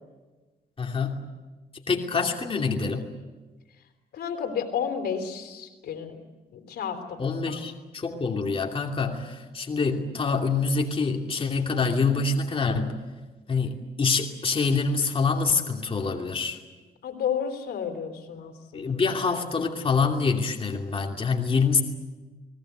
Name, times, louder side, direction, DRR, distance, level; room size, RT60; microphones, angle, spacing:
voice 1, 0.8-1.2 1.9-3.1 7.2-13.0 13.5-16.6 18.7-21.8, left 4 dB, 35° left, 1 dB, 2.8 m, -26 dB
voice 2, 4.1-6.2 6.5-7.2 7.4-7.6 17.0-18.9, left 7 dB, 80° left, 6 dB, 3.5 m, -31 dB
29.5 x 20.0 x 8.1 m, 1.2 s
cardioid pair, 90°, 17 cm